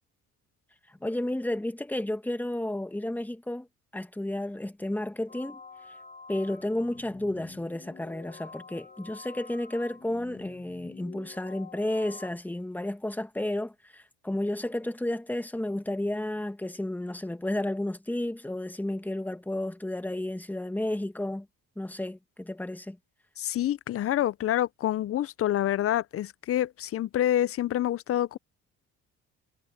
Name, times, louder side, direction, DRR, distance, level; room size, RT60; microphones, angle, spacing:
voice 1, 1.0-3.7 3.9-5.6 6.3-21.5 21.8-23.0, left 1 dB, 5° left, 1.4 m, -32 dB
sound 1, 5.3-12.3, left 4 dB, 25° left, 1.2 m, -48 dB
voice 2, 23.4-28.4, left 12 dB, 45° left, 0.6 m, -27 dB
cardioid pair, 95°, 31 cm